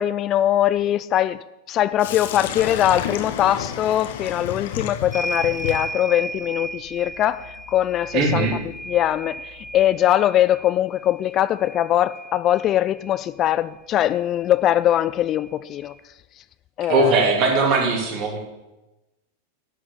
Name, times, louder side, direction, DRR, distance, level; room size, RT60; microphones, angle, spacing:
voice 1, 0.0-1.4 1.7-8.6 8.9-15.9 16.8-17.2, left 12 dB, 30° left, 0.3 m, -21 dB
Sink (filling or washing), 2.0-9.9, left 8 dB, 55° left, 1.0 m, -34 dB
sound 1, 5.1-13.2 14.5-14.6 14.9-16.0, right 2 dB, ahead, 1.3 m, -35 dB
voice 2, 8.1-8.5 16.9-18.4, right 3 dB, 40° right, 2.9 m, -19 dB
11.0 x 6.6 x 6.9 m
figure-of-eight pair, 90°, 0 cm